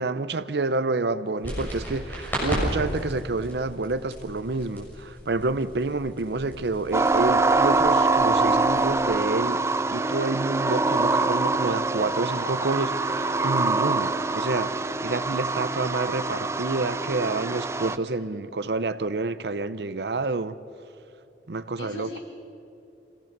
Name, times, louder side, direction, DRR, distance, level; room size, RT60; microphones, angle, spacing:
voice 1, 0.0-9.6 9.9-20.6 21.5-22.1, right 3 dB, 70° right, 0.7 m, -28 dB
sound 1, 1.4-9.0, equal, 10° left, 6.5 m, -35 dB
sound 2, 6.9-18.0, right 3 dB, 15° right, 0.4 m, -24 dB
voice 2, 17.9-18.4 21.8-22.2, left 2 dB, 70° left, 4.7 m, -41 dB
24.5 x 17.0 x 6.7 m
head